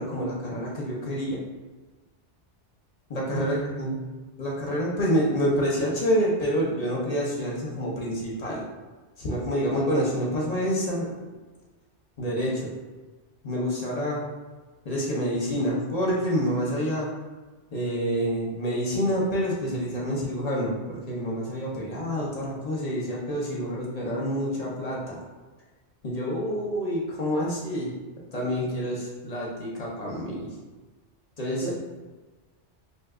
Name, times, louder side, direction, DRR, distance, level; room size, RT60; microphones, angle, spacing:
voice 1, 0.0-1.4 3.1-3.9 4.4-8.6 9.2-11.1 12.2-12.7 13.4-14.2 14.8-17.1 17.7-25.2 26.0-27.9 28.3-30.5 31.4-31.7, equal, 45° left, -4 dB, 0.6 m, -27 dB
voice 2, 3.3-3.8 31.6-31.7, right 4 dB, 85° right, -4 dB, 0.9 m, -34 dB
2.7 x 2.2 x 3.5 m, 1.3 s
omnidirectional pair, 1.2 m